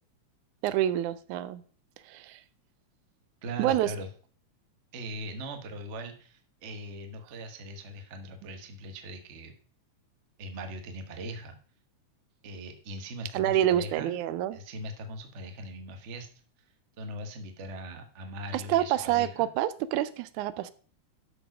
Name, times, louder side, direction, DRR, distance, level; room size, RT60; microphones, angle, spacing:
voice 1, 0.6-1.6 2.1-2.4 3.6-3.9 13.3-14.6 18.5-20.7, right 12 dB, 85° right, 15 dB, 2.0 m, -27 dB
voice 2, 3.4-4.1 4.9-9.5 10.4-11.6 12.4-14.1 14.5-16.3 16.6-19.5, right 1 dB, 55° right, 6 dB, 0.7 m, -40 dB
12.0 x 5.0 x 5.1 m, 0.43 s
omnidirectional pair, 3.5 m